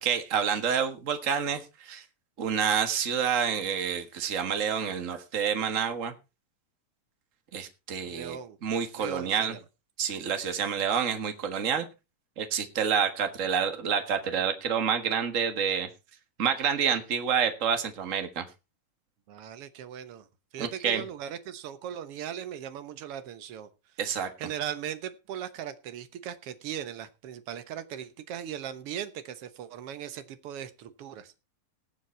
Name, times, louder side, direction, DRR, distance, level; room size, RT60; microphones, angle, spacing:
voice 1, 0.0-2.0 2.4-6.1 7.5-9.5 10.0-11.8 12.4-15.9 16.4-18.4 20.6-21.0 24.0-24.3, right 7 dB, 50° right, 7 dB, 0.9 m, -28 dB
voice 2, 8.0-8.6 9.0-9.6 19.3-20.3 20.5-23.7 24.4-31.3, right 10 dB, 65° right, 11 dB, 1.4 m, -38 dB
19.0 x 7.2 x 4.4 m, 0.29 s
omnidirectional pair, 3.9 m